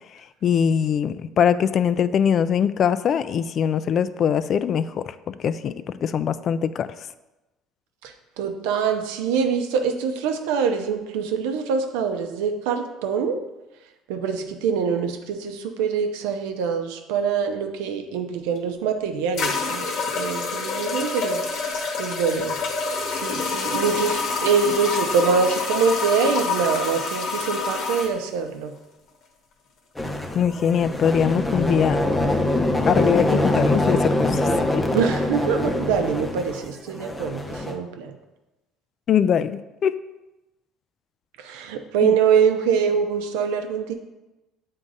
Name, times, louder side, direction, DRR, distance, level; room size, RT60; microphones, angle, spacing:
voice 1, 0.4-5.7 6.0-6.9 30.3-32.0 32.9-34.8 39.1-39.9 42.0-42.2, left 8 dB, 50° left, 14 dB, 0.3 m, -22 dB
voice 2, 8.0-13.4 14.1-19.9 20.1-22.6 23.1-28.7 34.9-38.1 41.4-43.9, right 6 dB, 90° right, 6 dB, 0.7 m, -24 dB
sound 1, 18.6-18.7 19.4-28.1, left 4 dB, 65° left, 1.2 m, -27 dB
sound 2, 30.0-37.8, left 1 dB, 10° left, 0.6 m, -24 dB
7.9 x 3.7 x 4.0 m, 1.0 s
supercardioid pair, 105°, 0 cm